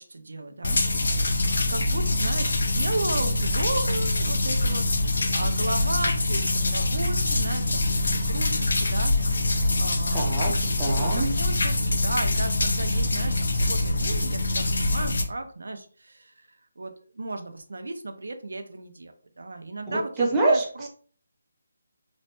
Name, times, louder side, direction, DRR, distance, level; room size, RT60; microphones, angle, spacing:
voice 1, 0.0-9.2 9.7-20.9, right 2 dB, 80° right, 7 dB, 0.5 m, -35 dB
sound 1, 0.6-15.2, left 2 dB, 60° left, 0.5 m, -24 dB
voice 2, 10.1-11.3 19.9-20.6, right 2 dB, 10° right, -3 dB, 0.5 m, -25 dB
3.1 x 2.1 x 2.8 m, 0.43 s
hypercardioid pair, 175°, 0 cm